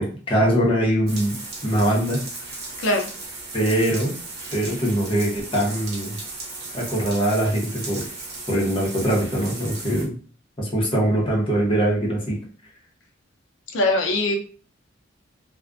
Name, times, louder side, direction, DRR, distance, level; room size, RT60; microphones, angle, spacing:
voice 1, 0.0-1.4 1.6-2.2 3.5-4.1 4.5-6.2 6.7-8.0 8.5-10.2 10.6-12.4, right 1 dB, 30° left, -3 dB, 0.8 m, -22 dB
sound 1, 1.1-10.1, right 3 dB, 60° right, 0.8 m, -36 dB
voice 2, 2.8-3.1 13.7-14.4, left 2 dB, 70° left, 4 dB, 0.5 m, -21 dB
2.4 x 2.1 x 2.4 m, 0.41 s
head